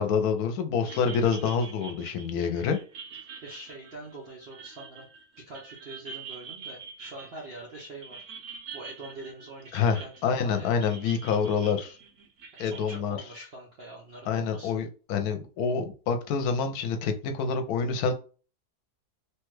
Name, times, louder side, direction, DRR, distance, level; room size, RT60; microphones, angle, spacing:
voice 1, 0.0-2.8 9.7-12.0 12.6-13.2 14.3-18.1, left 6 dB, 80° left, 1.1 m, -27 dB
sound 1, 0.8-13.0, right 5 dB, 80° right, 1.3 m, -45 dB
voice 2, 3.4-5.1 5.4-8.2 8.7-10.7 12.6-14.8, right 2 dB, 55° right, 0.7 m, -44 dB
3.1 x 2.3 x 3.1 m
omnidirectional pair, 1.6 m